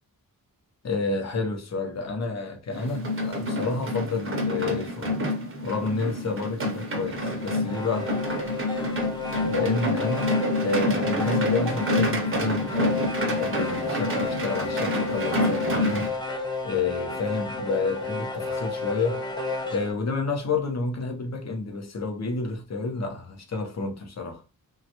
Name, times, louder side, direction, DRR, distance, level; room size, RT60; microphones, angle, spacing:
voice 1, 0.8-5.2 5.6-8.2 9.5-10.3 10.6-19.2 19.7-24.4, left 3 dB, 50° left, 0.7 m, -30 dB
sound 1, 2.7-16.1, left 1 dB, 35° right, 0.7 m, -28 dB
sound 2, 7.3-19.9, left 3 dB, 10° left, 0.7 m, -32 dB
3.1 x 2.3 x 2.9 m
wide cardioid pair, 140°, 35 cm